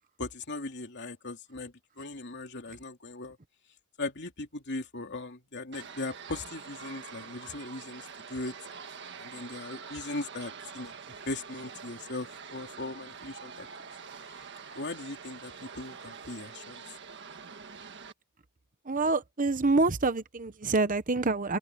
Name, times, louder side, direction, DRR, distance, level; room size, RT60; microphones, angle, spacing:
voice 1, 0.2-3.4 4.0-8.5 9.2-10.9 11.2-13.7 14.3-14.4 14.7-16.8, left 2 dB, 55° left, 3.0 m, -39 dB
sound 1, 5.7-18.1, right 6 dB, 55° right, 1.6 m, -45 dB
voice 2, 18.8-21.6, right 3 dB, 40° right, 1.0 m, -26 dB
open air
head